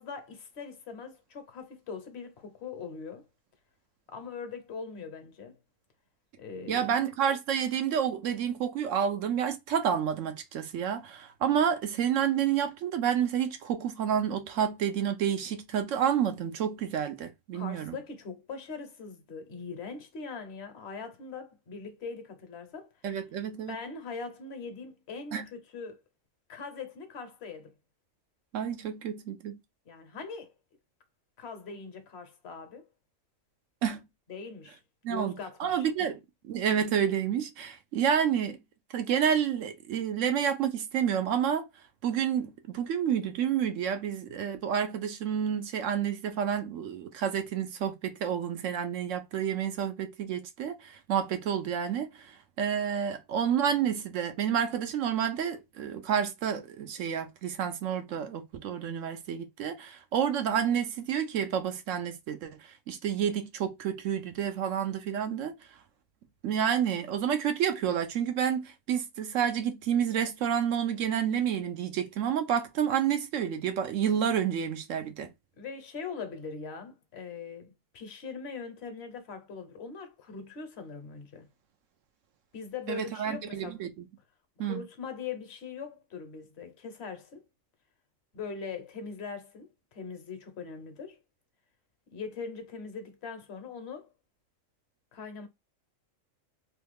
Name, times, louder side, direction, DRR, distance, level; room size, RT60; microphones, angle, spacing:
voice 1, 0.0-3.3 4.1-5.6 6.4-7.0 17.5-22.9 23.7-26.0 26.5-27.7 29.8-30.5 31.4-32.9 34.3-34.8 35.1-36.1 75.6-81.5 82.5-83.8 84.6-87.5 88.3-91.2 92.1-94.1 95.1-95.5, left 5 dB, 55° left, 1.0 m, -41 dB
voice 2, 6.7-17.9 23.0-23.8 25.3-25.4 28.5-29.6 33.8-34.0 35.0-35.3 35.6-38.6 38.9-41.7 42.0-65.5 66.4-75.3 82.9-84.0 84.6-84.8, right 8 dB, 75° right, 0.9 m, -29 dB
3.1 x 2.3 x 3.3 m
omnidirectional pair, 1.4 m